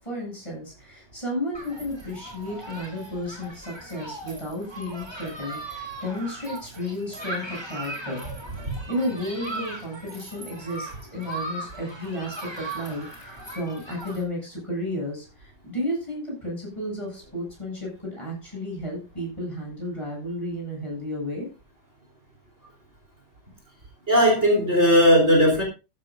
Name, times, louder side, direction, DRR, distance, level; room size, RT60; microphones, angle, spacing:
voice 1, 0.0-8.3 8.9-21.5, left 1 dB, 15° left, -2 dB, 8.0 m, -33 dB
Human group actions, 1.5-14.2, right 2 dB, 15° right, 3.1 m, -38 dB
voice 2, 24.1-25.6, equal, 40° right, 0 dB, 4.3 m, -17 dB
14.0 x 12.5 x 2.6 m, 0.28 s
omnidirectional pair, 1.9 m